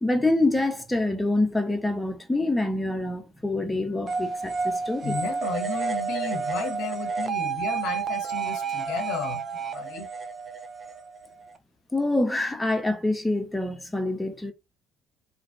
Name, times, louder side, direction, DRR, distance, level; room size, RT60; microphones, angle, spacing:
voice 1, 0.0-5.2 11.9-14.5, left 2 dB, 10° left, 0.7 m, -26 dB
sound 1, 4.1-11.6, right 5 dB, 40° right, 0.4 m, -30 dB
voice 2, 5.0-10.1, left 5 dB, 65° left, 0.6 m, -34 dB
2.6 x 2.3 x 2.3 m
hypercardioid pair, 50°, 0 cm